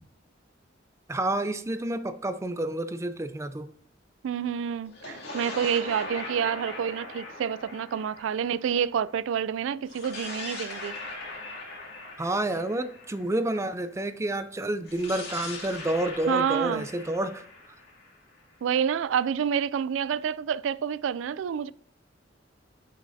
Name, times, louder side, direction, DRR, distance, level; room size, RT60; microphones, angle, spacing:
voice 1, 1.1-3.7 12.2-17.4, right 1 dB, 15° right, 0.5 m, -29 dB
voice 2, 4.2-11.0 16.3-16.9 18.6-21.7, right 8 dB, 85° right, 0.3 m, -28 dB
sound 1, 4.9-9.3 9.9-13.8 14.8-18.7, left 3 dB, 60° left, 2.3 m, -40 dB
8.2 x 6.4 x 2.7 m
head